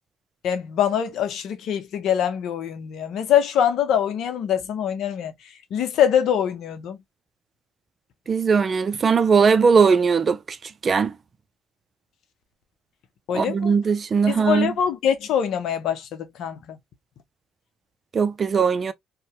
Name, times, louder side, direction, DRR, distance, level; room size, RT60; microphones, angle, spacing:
voice 1, 0.4-5.3 5.7-7.0 13.3-13.7 14.3-16.8, left 9 dB, 65° left, 0.6 m, -24 dB
voice 2, 8.3-10.4 10.8-11.1 13.3-14.7 18.1-18.9, right 5 dB, 45° right, 0.4 m, -19 dB
2.7 x 2.1 x 2.9 m
hypercardioid pair, 60°, 0 cm